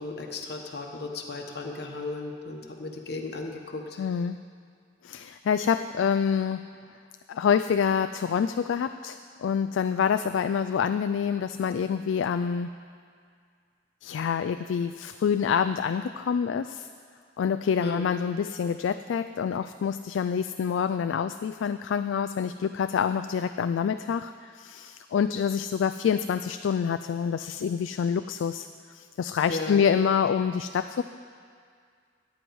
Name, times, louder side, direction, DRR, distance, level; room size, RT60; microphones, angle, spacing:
voice 1, 0.0-4.0 17.8-18.2 29.5-29.8, left 2 dB, 60° left, 2 dB, 1.1 m, -35 dB
voice 2, 4.0-4.4 5.0-6.6 7.3-12.7 14.0-16.9 17.4-31.0, left 7 dB, 90° left, 10 dB, 0.3 m, -27 dB
14.5 x 9.4 x 4.7 m, 2.1 s
head